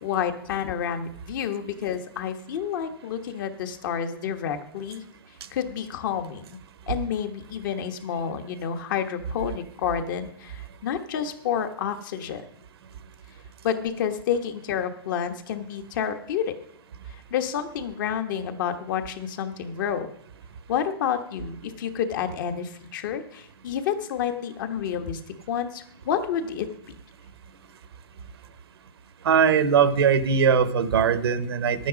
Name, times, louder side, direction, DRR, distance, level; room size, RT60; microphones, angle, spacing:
voice 1, 0.0-5.0 5.5-6.6 6.9-12.4 13.6-16.6 17.1-20.1 20.7-25.2 25.5-26.7, left 8 dB, 55° left, 7 dB, 1.4 m, -29 dB
voice 2, 29.2-31.9, right 7 dB, 80° right, 14 dB, 1.0 m, -20 dB
11.0 x 9.2 x 5.2 m, 0.71 s
hypercardioid pair, 150°, 13 cm